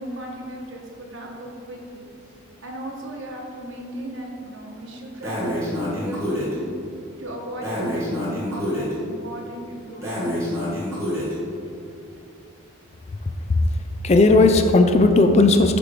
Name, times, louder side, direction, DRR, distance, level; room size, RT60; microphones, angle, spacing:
voice 1, 0.0-2.1 2.6-6.7 7.2-10.2 11.5-12.3, right 1 dB, 65° right, 0 dB, 1.2 m, -37 dB
Breathing, 5.2-6.5 7.6-8.9 10.0-11.3, left 1 dB, 15° right, 1.6 m, -27 dB
voice 2, 13.6-15.8, left 2 dB, 30° left, 6 dB, 0.3 m, -16 dB
9.4 x 3.4 x 4.9 m, 2.6 s
head